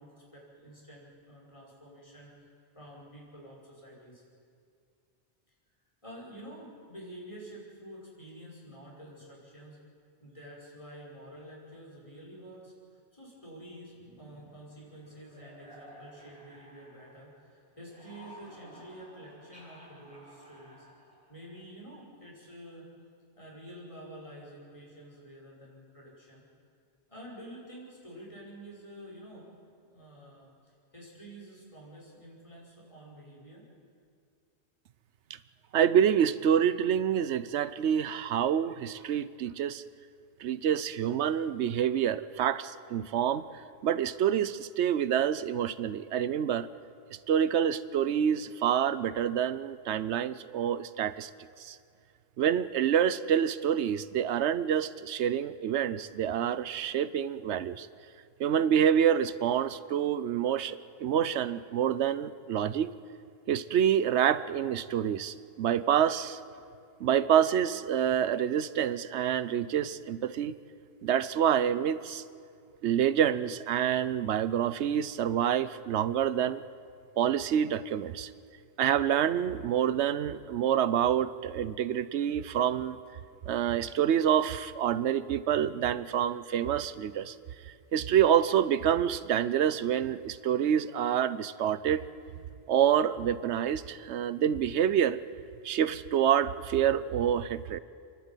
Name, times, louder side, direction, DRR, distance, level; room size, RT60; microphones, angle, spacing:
voice 1, 0.0-4.2 6.0-9.8 10.2-12.7 13.1-22.9 23.3-26.4 27.1-29.5 29.8-33.7, right 1 dB, 30° left, -4 dB, 5.7 m, -49 dB
sound 1, 13.9-17.4 17.7-21.8, equal, 5° right, 8.0 m, -54 dB
voice 2, 35.7-39.8 40.4-43.5 43.8-46.7 47.3-51.3 51.6-51.8 52.4-57.9 58.4-60.8 61.0-62.9 63.5-66.4 67.0-70.5 71.0-72.2 72.8-76.6 77.2-78.3 78.8-83.0 83.5-87.4 87.9-92.1 92.7-95.2 95.6-97.8, right 9 dB, 85° right, 15 dB, 1.0 m, -27 dB
28.5 x 11.5 x 9.1 m, 2.3 s
omnidirectional pair, 1.1 m